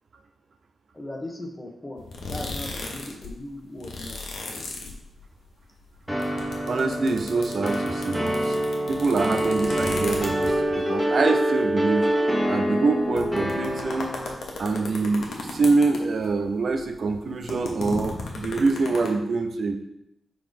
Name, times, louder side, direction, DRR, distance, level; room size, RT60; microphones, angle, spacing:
voice 1, 0.9-4.2, left 1 dB, 15° left, 1 dB, 1.2 m, -38 dB
sound 1, 2.0-3.3 3.6-5.5 5.8-10.8 11.4-11.5 11.7-11.8 12.5-12.6 13.0-16.4 16.7-19.1, left 3 dB, 80° left, 1.1 m, -35 dB
sound 2, 6.1-14.3, right 1 dB, 5° right, 1.3 m, -26 dB
voice 2, 6.7-8.6 8.9-12.1 12.5-14.2 14.6-19.8, right 3 dB, 60° right, 6 dB, 0.6 m, -25 dB
4.7 x 4.0 x 5.2 m, 0.81 s
cardioid pair, 85°, 0 cm